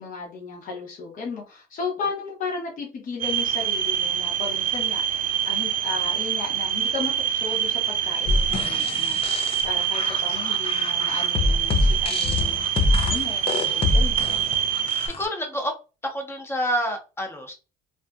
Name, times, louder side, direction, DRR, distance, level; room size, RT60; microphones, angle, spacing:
voice 1, 0.0-14.2, left 4 dB, 50° left, -2 dB, 1.0 m, -35 dB
sound 1, 3.2-15.1, right 9 dB, 55° right, 0.4 m, -25 dB
sound 2, 8.3-15.3, left 2 dB, 35° left, 0.4 m, -25 dB
voice 2, 14.7-15.8 16.0-17.5, equal, 15° left, 4 dB, 0.8 m, -28 dB
2.6 x 2.3 x 2.3 m, 0.31 s
cardioid pair, 110°, 17 cm